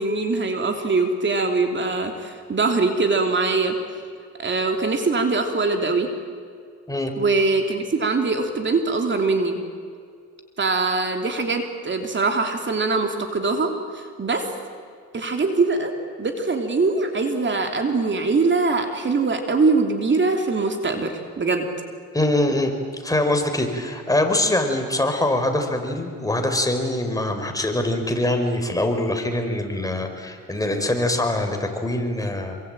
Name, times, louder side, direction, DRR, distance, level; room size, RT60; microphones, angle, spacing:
voice 1, 0.0-3.7 4.4-6.1 7.2-9.6 10.6-14.5 15.1-15.9 16.2-21.6, right 3 dB, 40° right, 4 dB, 3.1 m, -22 dB
voice 2, 22.1-22.7 23.0-32.5, left 1 dB, 10° left, 4 dB, 4.5 m, -23 dB
27.0 x 24.5 x 9.0 m, 2.2 s
cardioid pair, 90°, 30 cm